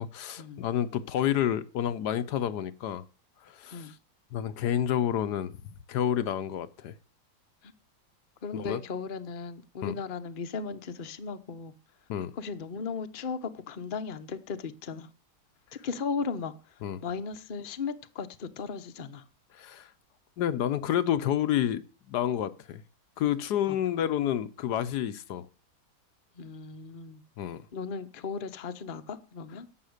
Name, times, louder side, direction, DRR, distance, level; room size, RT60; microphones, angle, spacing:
voice 1, 0.0-3.0 3.4-4.0 4.3-5.6 5.9-6.9 8.5-8.8 9.8-9.9 12.1-12.3 16.8-17.0 19.5-19.9 20.4-21.8 22.1-22.8 23.2-25.5 27.4-27.6, left 10 dB, 75° left, 1.3 m, -29 dB
voice 2, 8.4-11.7 12.4-15.1 15.8-16.5 17.0-19.2 23.7-23.8 24.0-24.1 26.4-27.2 27.7-29.7, left 5 dB, 40° left, 0.9 m, -36 dB
11.5 x 8.0 x 6.5 m
omnidirectional pair, 1.8 m